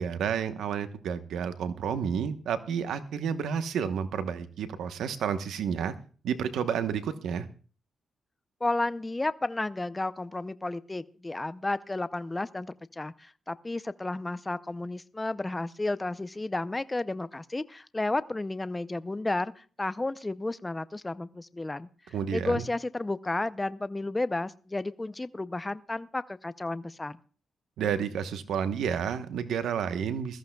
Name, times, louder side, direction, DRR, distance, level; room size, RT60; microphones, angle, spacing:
voice 1, 0.0-5.9 6.2-7.5 22.1-22.7 27.8-30.4, right 7 dB, 90° right, 10 dB, 0.9 m, -30 dB
voice 2, 8.6-21.9 22.3-27.2, left 2 dB, 15° left, 15 dB, 0.5 m, -32 dB
20.5 x 14.0 x 2.2 m, 0.39 s
cardioid pair, 105°, 0 cm